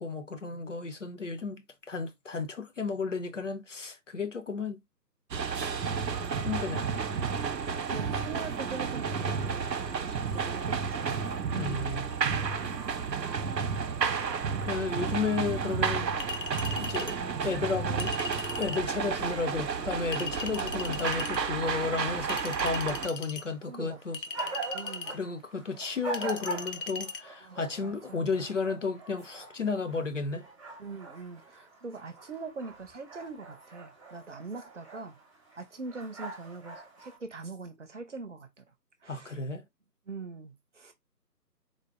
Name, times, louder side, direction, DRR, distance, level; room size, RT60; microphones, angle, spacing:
voice 1, 0.0-4.8 6.4-6.9 11.5-12.1 14.6-16.1 16.8-17.2 17.4-18.1 18.6-24.2 25.1-30.5 39.1-39.6, left 4 dB, 50° left, 0.6 m, -33 dB
sound 1, 5.3-23.1, right 6 dB, 85° right, 0.7 m, -31 dB
voice 2, 7.6-11.2 11.5-12.0 12.2-12.7 13.4-14.0 23.6-25.2 27.4-28.3 30.8-35.2 35.6-38.6 39.0-39.4 40.1-40.9, right 4 dB, 50° right, 0.8 m, -43 dB
Chink clink, 16.2-17.2 18.0-18.9 20.1-21.4 22.3-23.5 24.1-25.2 26.1-27.2, left 4 dB, 90° left, 0.7 m, -38 dB
sound 2, 19.1-37.2, right 3 dB, 20° right, 1.0 m, -44 dB
3.9 x 2.0 x 3.5 m
figure-of-eight pair, 150°, 49 cm